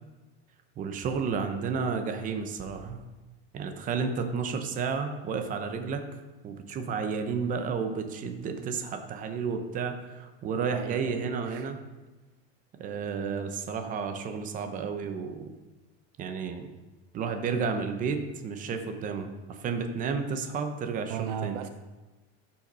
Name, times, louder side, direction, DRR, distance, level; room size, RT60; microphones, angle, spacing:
voice 1, 0.8-3.0 3.5-6.0 6.4-11.8 12.8-15.5 16.2-16.6 17.1-21.6, right 5 dB, 25° right, 6 dB, 0.9 m, -32 dB
voice 2, 10.7-11.7 21.1-21.7, right 9 dB, 55° right, 9 dB, 0.6 m, -36 dB
13.0 x 5.8 x 5.5 m, 1.2 s
supercardioid pair, 170°, 32 cm